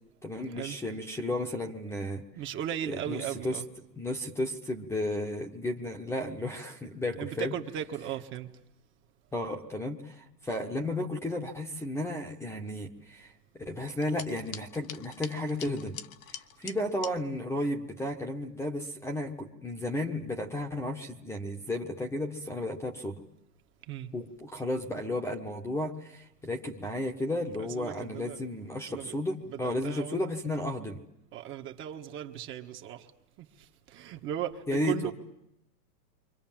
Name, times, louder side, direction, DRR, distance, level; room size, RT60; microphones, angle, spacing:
voice 1, 0.2-2.2 2.9-3.6 4.0-7.5 9.3-16.0 16.6-23.2 24.1-31.0 34.7-35.1, left 1 dB, 5° left, 1.4 m, -33 dB
voice 2, 2.4-3.7 7.2-8.5 23.9-24.1 27.6-28.4 28.9-29.1 29.4-30.2 31.3-33.1 33.4-35.1, right 10 dB, 25° right, 1.6 m, -37 dB
sound 1, 13.9-17.1, left 10 dB, 55° left, 1.3 m, -44 dB
29.0 x 25.0 x 7.6 m
hypercardioid pair, 145°, 49 cm